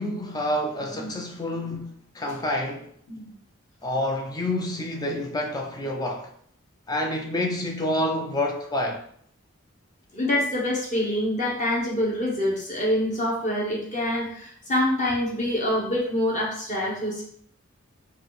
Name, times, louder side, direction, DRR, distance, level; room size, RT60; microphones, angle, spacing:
voice 1, 0.0-2.9 3.8-6.3 6.9-9.0, left 1 dB, 20° left, 0.4 m, -28 dB
voice 2, 10.1-17.2, left 1 dB, 35° left, 1.0 m, -26 dB
4.6 x 2.4 x 4.8 m
head